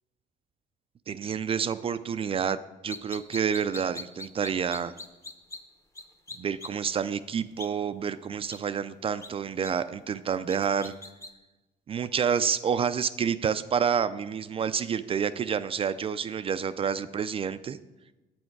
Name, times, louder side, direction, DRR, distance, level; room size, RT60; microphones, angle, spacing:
voice 1, 1.1-4.9 6.4-10.9 11.9-17.8, right 7 dB, 35° right, 13 dB, 0.4 m, -29 dB
sound 1, 2.9-5.6 5.9-6.0 6.3-6.7 7.6-7.7 8.5-8.6 9.2-9.3 9.6-9.7 10.5-11.3, left 2 dB, 15° left, 0.9 m, -40 dB
8.7 x 7.9 x 4.6 m, 1.1 s
cardioid pair, 110°, 17 cm